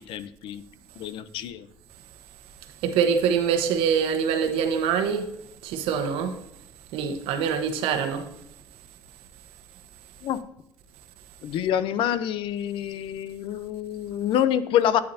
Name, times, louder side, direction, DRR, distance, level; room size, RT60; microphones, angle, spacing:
voice 1, 0.1-0.6 1.0-1.7 10.2-10.4 11.4-15.0, left 10 dB, 70° left, 0.6 m, -26 dB
voice 2, 2.8-5.3 5.6-6.4 6.9-8.3, right 7 dB, 80° right, 1.1 m, -24 dB
9.3 x 8.6 x 2.7 m
cardioid pair, 100°, 9 cm